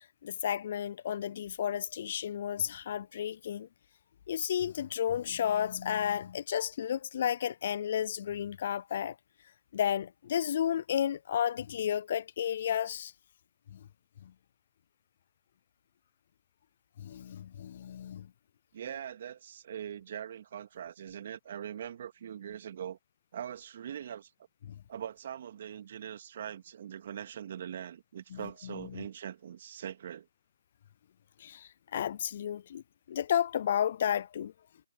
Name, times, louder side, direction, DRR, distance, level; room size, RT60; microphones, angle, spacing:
voice 1, 0.2-3.7 4.3-9.1 9.7-13.1 17.0-18.3 24.7-24.8 28.3-28.4 28.6-29.0 31.4-32.8 33.1-34.5, left 9 dB, 45° left, 0.3 m, -32 dB
voice 2, 18.7-23.0 23.3-24.3 24.9-30.3, right 9 dB, 50° right, 2.2 m, -42 dB
hypercardioid pair, 150°, 0 cm